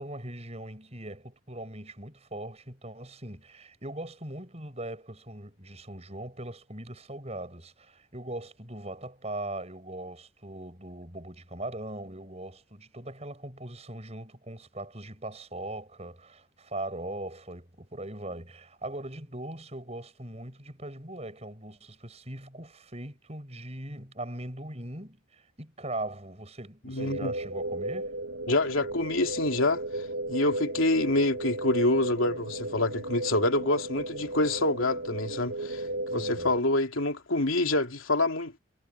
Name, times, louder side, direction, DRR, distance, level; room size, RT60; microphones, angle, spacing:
voice 1, 0.0-28.1 36.1-36.6, right 1 dB, 30° right, 6.7 m, -40 dB
voice 2, 26.9-27.3 28.5-29.8 30.3-35.8 36.1-38.6, left 2 dB, 80° left, 3.0 m, -26 dB
sound 1, 27.0-36.6, right 1 dB, 90° right, 3.5 m, -35 dB
head